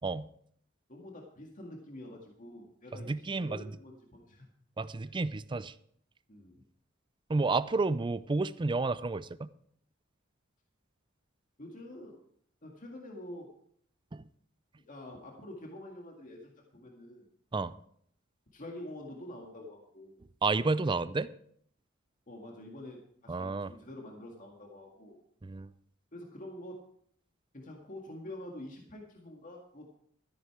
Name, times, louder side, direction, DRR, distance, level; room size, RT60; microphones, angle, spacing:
voice 1, 0.9-4.5 5.0-5.1 6.3-6.6 11.6-12.2 12.6-13.5 14.8-17.3 18.5-20.2 22.3-25.2 26.1-26.9 27.5-30.0, left 1 dB, 40° left, 1.9 m, -47 dB
voice 2, 3.1-3.6 4.8-5.7 7.3-9.5 14.1-14.2 17.5-17.7 20.4-21.3 23.3-23.7 25.4-25.7, right 3 dB, 25° right, 0.4 m, -31 dB
13.5 x 10.5 x 4.8 m
head